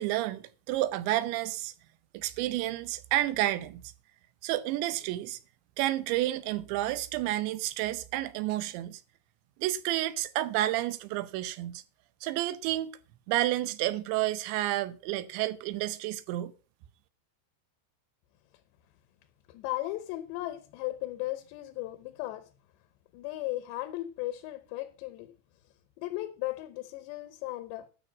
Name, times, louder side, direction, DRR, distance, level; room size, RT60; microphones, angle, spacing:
voice 1, 0.0-1.7 2.1-3.8 4.4-5.4 5.8-9.0 9.6-11.8 12.2-12.9 13.3-16.5, right 15 dB, 80° right, 3.0 m, -30 dB
voice 2, 19.5-22.5 23.1-25.3 26.0-27.9, left 16 dB, 80° left, 2.9 m, -36 dB
12.5 x 5.6 x 7.3 m
omnidirectional pair, 5.2 m